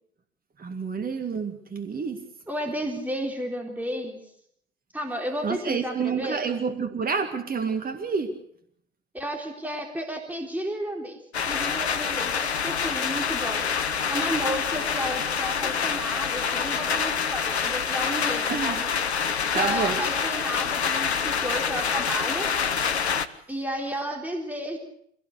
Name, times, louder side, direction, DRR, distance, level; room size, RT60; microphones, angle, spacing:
voice 1, 0.6-2.2 5.4-8.4 18.5-18.8 19.5-20.0, right 5 dB, 25° right, 6 dB, 2.2 m, -29 dB
voice 2, 2.5-4.2 4.9-6.4 9.1-11.2 11.5-13.6 14.1-18.9 19.5-22.5 23.5-24.8, equal, 5° right, 2 dB, 3.8 m, -32 dB
sound 1, 11.3-23.3, left 6 dB, 80° left, 1.1 m, -26 dB
25.0 x 17.5 x 6.6 m, 0.68 s
figure-of-eight pair, 65°, 32 cm